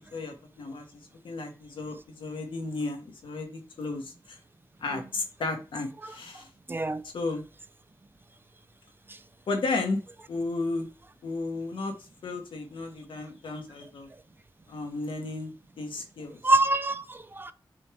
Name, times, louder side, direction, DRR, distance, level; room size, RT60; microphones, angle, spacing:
voice 1, 0.1-0.8 1.2-4.4 4.8-6.5 7.1-7.4 9.5-10.0 10.3-10.8 11.2-11.9 12.2-14.1 14.7-15.5 15.8-16.4, left 3 dB, 85° left, 1.3 m, -33 dB
voice 2, 6.7-7.0 9.1-9.2 16.4-17.5, right 2 dB, 25° right, 0.5 m, -26 dB
6.2 x 2.4 x 3.4 m
cardioid pair, 65°, 8 cm